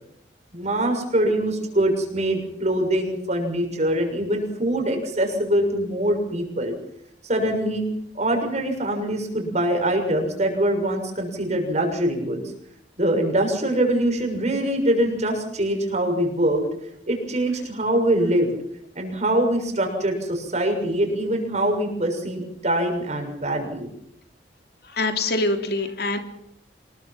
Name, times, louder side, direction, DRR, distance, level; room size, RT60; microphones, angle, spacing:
voice 1, 0.5-6.7 7.2-7.8 8.1-12.4 13.0-16.6 17.1-18.5 18.9-23.9, right 1 dB, 40° right, 3 dB, 6.7 m, -23 dB
voice 2, 24.9-26.2, left 2 dB, 65° left, 6 dB, 3.0 m, -24 dB
26.5 x 21.0 x 5.9 m, 0.73 s
head